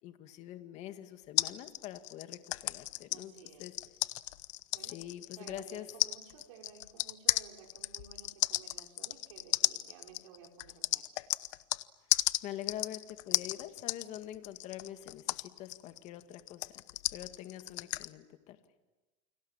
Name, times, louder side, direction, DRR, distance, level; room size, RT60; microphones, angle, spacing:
voice 1, 0.0-3.3 3.6-3.7 4.9-5.9 12.4-16.8 17.1-18.6, left 12 dB, 45° left, 8 dB, 2.2 m, -45 dB
sound 1, 1.4-11.8 12.1-18.1, left 19 dB, 70° left, 0.9 m, -34 dB
voice 2, 3.0-3.7 4.7-5.0 5.4-11.0, right 7 dB, 75° right, 1 dB, 4.5 m, -55 dB
29.5 x 25.5 x 7.4 m, 1.2 s
supercardioid pair, 145°, 17 cm